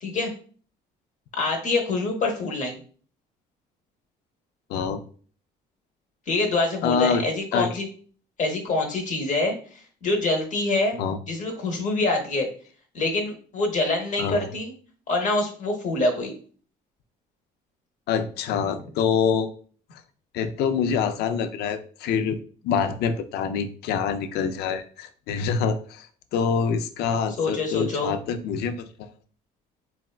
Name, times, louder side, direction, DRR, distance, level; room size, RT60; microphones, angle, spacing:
voice 1, 0.0-0.3 1.3-2.8 6.3-7.9 8.4-11.0 11.3-12.5 12.9-14.7 15.1-16.3 27.3-28.1, left 2 dB, 50° left, 2 dB, 0.8 m, -25 dB
voice 2, 4.7-5.0 6.8-7.2 7.5-7.7 11.0-11.2 14.2-14.4 18.1-19.5 20.3-22.4 22.6-26.1 26.3-29.1, left 6 dB, 75° left, 9 dB, 0.4 m, -25 dB
4.0 x 2.2 x 2.3 m, 0.43 s
cardioid pair, 110°, 17 cm